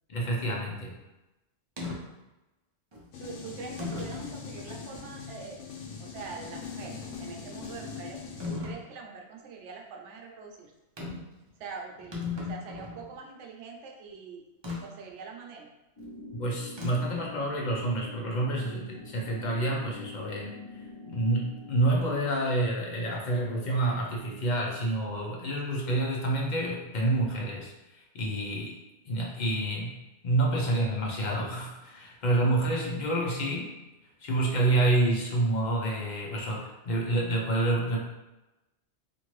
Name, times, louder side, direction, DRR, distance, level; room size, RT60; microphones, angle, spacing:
voice 1, 0.1-1.0 16.3-20.6 21.1-28.8 29.1-30.0 30.2-33.7 34.2-38.0, right 2 dB, 50° left, -2 dB, 0.6 m, -28 dB
sound 1, 1.8-2.0 2.9-3.0 3.8-4.3 4.9-5.0 8.4-8.8 11.0-11.3 11.6-11.7 12.0-13.0 14.6-14.8 16.8-17.2, left 4 dB, 35° right, 0.4 m, -36 dB
sound 2, 3.1-8.6, left 5 dB, 85° left, 0.9 m, -41 dB
voice 2, 3.2-5.6 6.0-10.7 11.6-14.4 14.8-15.7, right 5 dB, 80° right, 1 dB, 0.9 m, -44 dB
sound 3, 16.0-21.8, left 3 dB, 20° left, 0.9 m, -45 dB
2.6 x 2.5 x 3.0 m, 1.0 s
omnidirectional pair, 1.2 m